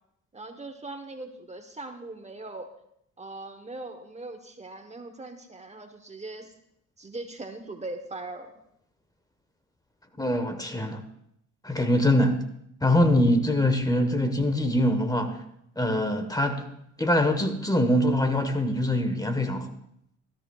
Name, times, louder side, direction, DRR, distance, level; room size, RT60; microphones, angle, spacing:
voice 1, 0.3-2.7 3.2-6.5 7.0-8.5, right 2 dB, 20° right, 7 dB, 1.1 m, -40 dB
voice 2, 10.2-11.0 11.6-12.4 12.8-15.4 15.8-16.6 17.0-19.7, left 1 dB, 10° left, 7 dB, 1.2 m, -23 dB
16.5 x 13.0 x 2.4 m, 0.75 s
cardioid pair, 90°, 30 cm